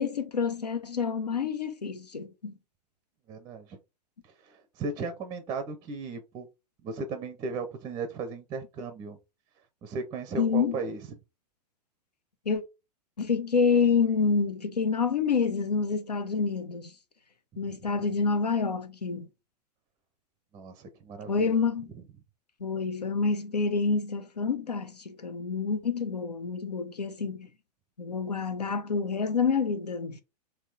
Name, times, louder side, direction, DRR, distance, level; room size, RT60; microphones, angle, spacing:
voice 1, 0.0-2.5 10.4-10.8 12.5-12.6 13.2-16.9 17.6-19.3 21.3-21.9 22.6-27.5 28.0-30.2, left 5 dB, 75° left, 0.7 m, -27 dB
voice 2, 3.3-3.8 4.4-6.5 6.8-9.2 9.8-11.0 17.6-17.7 20.5-21.6, right 4 dB, 20° right, 0.6 m, -36 dB
3.6 x 2.8 x 3.9 m
figure-of-eight pair, 100°, 21 cm